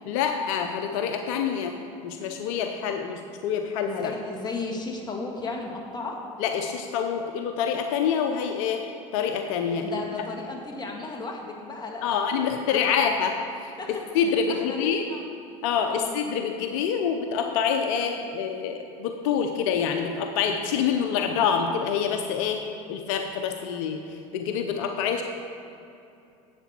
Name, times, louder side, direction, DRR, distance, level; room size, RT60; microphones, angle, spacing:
voice 1, 0.1-1.8 2.0-4.1 6.4-8.9 9.1-9.9 12.0-15.0 15.6-22.6 22.9-25.2, left 7 dB, 75° left, 5 dB, 0.8 m, -26 dB
voice 2, 3.9-6.2 9.7-13.0 13.8-13.9 14.5-15.2 15.9-16.1, left 3 dB, 25° left, 0 dB, 2.0 m, -35 dB
11.0 x 8.3 x 4.5 m, 2.7 s
supercardioid pair, 90°, 17 cm